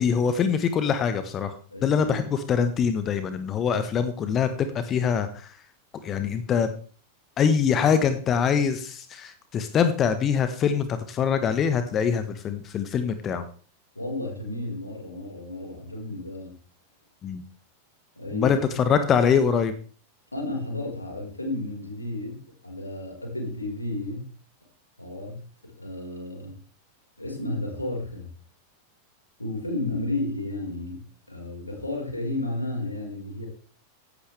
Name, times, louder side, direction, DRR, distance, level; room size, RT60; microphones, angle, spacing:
voice 1, 0.0-1.6 1.8-5.6 6.0-6.7 7.4-13.4 17.2-17.4 18.3-19.7, left 7 dB, 30° left, 11 dB, 1.2 m, -24 dB
voice 2, 1.7-2.3 13.9-16.5 18.2-18.6 20.3-24.3 25.0-26.6 27.2-28.3 29.4-33.5, left 2 dB, 85° left, 0 dB, 4.7 m, -32 dB
16.5 x 11.5 x 3.4 m, 0.41 s
figure-of-eight pair, 90°, 0 cm